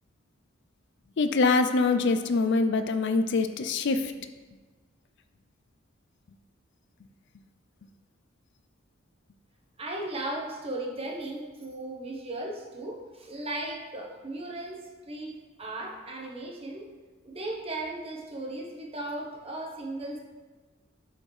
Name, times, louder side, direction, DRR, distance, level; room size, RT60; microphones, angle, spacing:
voice 1, 1.2-4.1, left 3 dB, 60° left, 8 dB, 0.5 m, -24 dB
voice 2, 9.8-16.9 17.2-20.2, right 2 dB, 30° right, -2 dB, 1.2 m, -36 dB
12.0 x 4.4 x 3.3 m, 1.3 s
head